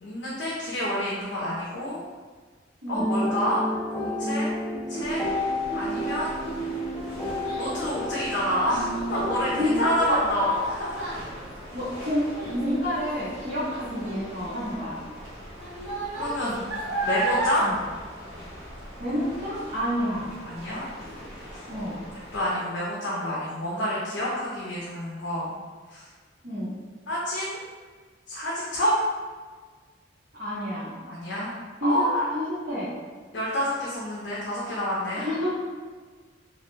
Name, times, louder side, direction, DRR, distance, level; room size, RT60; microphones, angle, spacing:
voice 1, 0.0-2.0 2.9-3.6 3.9-4.5 4.9-5.2 5.7-6.4 7.6-11.2 16.1-16.6 17.0-17.7 20.5-20.9 22.3-25.5 25.9-26.1 27.1-27.6 28.3-28.9 31.1-31.5 31.8-32.3 33.3-35.3, equal, 70° left, -5 dB, 0.4 m, -28 dB
sound 1, 3.0-9.9, equal, 5° left, 0.4 m, -30 dB
sound 2, 5.0-22.5, equal, 20° right, 1.4 m, -43 dB
Child speech kid speaking, 6.3-18.9 19.3-19.7 20.2-20.3, right 2 dB, 35° right, 1.1 m, -34 dB
voice 2, 9.6-9.9 10.4-10.5 11.7-15.0 17.6-17.8 19.0-20.3 21.7-22.0 26.4-26.7 30.3-30.9 31.8-32.0 32.3-32.9 35.1-35.5, equal, 55° right, -13 dB, 0.9 m, -29 dB
2.3 x 2.1 x 3.0 m, 1.5 s
head